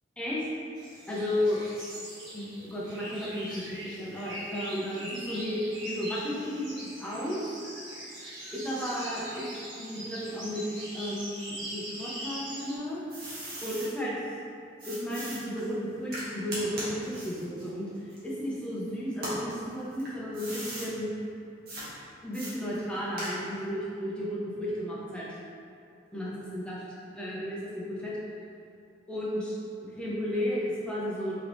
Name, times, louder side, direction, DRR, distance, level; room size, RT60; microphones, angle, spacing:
sound 1, 0.7-12.8, equal, 80° right, 1.5 m, -41 dB
voice 1, 1.1-1.6 2.3-7.4 8.5-9.5 9.8-13.0 13.6-14.2 14.8-21.1 22.2-25.3 26.1-26.8 27.1-28.1 29.1-29.6 29.9-31.3, equal, 5° left, -7 dB, 0.7 m, -33 dB
sound 2, 12.5-13.9 14.8-18.7 19.1-20.9 21.7-21.9 22.3-23.7, right 1 dB, 55° right, 1.1 m, -39 dB
3.9 x 3.5 x 3.0 m, 2.4 s
head